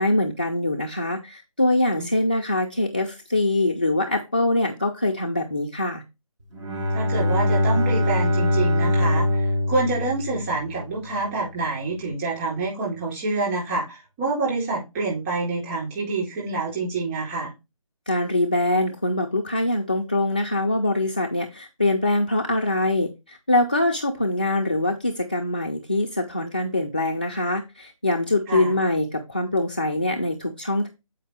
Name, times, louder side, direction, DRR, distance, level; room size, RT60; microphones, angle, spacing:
voice 1, 0.0-6.0 18.1-30.9, left 2 dB, 15° left, 0.3 m, -23 dB
Bowed string instrument, 6.5-11.1, left 1 dB, 55° right, 2.3 m, -23 dB
voice 2, 6.9-17.5 28.5-28.8, right 3 dB, 20° right, 3.9 m, -27 dB
7.9 x 5.0 x 3.3 m
figure-of-eight pair, 155°, 18 cm